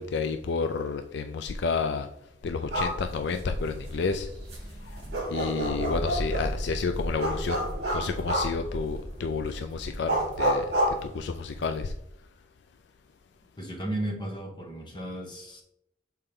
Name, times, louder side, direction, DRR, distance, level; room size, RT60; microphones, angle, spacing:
voice 1, 0.0-2.1 2.4-4.3 4.8-7.7 7.9-11.9, left 4 dB, 60° left, 6 dB, 0.3 m, -31 dB
sound 1, 2.6-11.8, right 1 dB, 55° right, 2.4 m, -30 dB
voice 2, 13.6-15.6, right 1 dB, 25° left, 0 dB, 1.2 m, -34 dB
6.8 x 4.4 x 3.6 m, 0.81 s
head